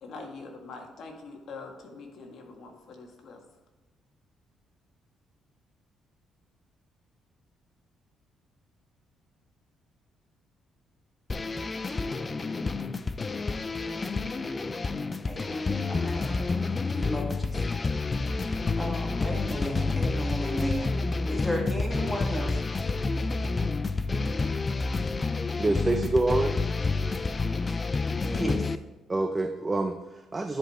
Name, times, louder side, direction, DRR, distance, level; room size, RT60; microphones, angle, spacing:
voice 1, 0.0-3.4, left 3 dB, 65° left, 2 dB, 1.8 m, -44 dB
sound 1, 11.3-28.8, left 3 dB, 30° left, 0.4 m, -29 dB
voice 2, 15.2-17.6 18.8-22.6 28.3-28.6, equal, 5° left, 1 dB, 1.9 m, -34 dB
voice 3, 25.6-26.6 29.1-30.6, right 2 dB, 25° right, 6 dB, 0.6 m, -27 dB
10.0 x 5.1 x 4.3 m, 1.2 s
cardioid pair, 90°, 0 cm